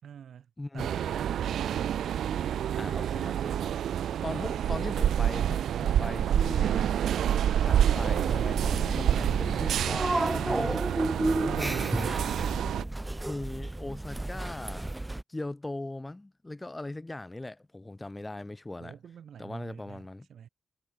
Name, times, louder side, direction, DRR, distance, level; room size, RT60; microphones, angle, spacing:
voice 1, 0.0-2.1 9.2-10.2 18.8-20.5, right 8 dB, 65° right, 5.6 m, -48 dB
voice 2, 0.6-1.1 2.8-3.7 4.2-6.9 7.6-8.6 8.9-10.9 11.4-12.1 13.2-14.9 15.3-19.0 19.4-20.3, left 2 dB, 15° left, 2.4 m, -39 dB
sound 1, 0.8-12.8, right 10 dB, 80° right, 1.9 m, -28 dB
sound 2, 7.9-15.2, right 1 dB, 10° right, 1.0 m, -32 dB
wide cardioid pair, 130°, 0 cm